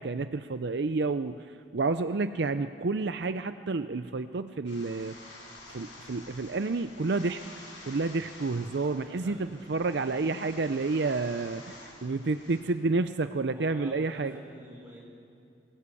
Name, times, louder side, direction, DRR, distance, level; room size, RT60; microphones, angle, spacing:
voice 1, 0.0-5.4 5.7-7.4 7.8-14.3, right 3 dB, 60° right, 10 dB, 0.5 m, -30 dB
sound 1, 4.7-12.6, left 2 dB, 70° left, 7.1 m, -49 dB
voice 2, 9.1-9.6 13.5-15.0, equal, 10° right, -3 dB, 6.3 m, -47 dB
22.5 x 17.5 x 8.4 m, 2.5 s
head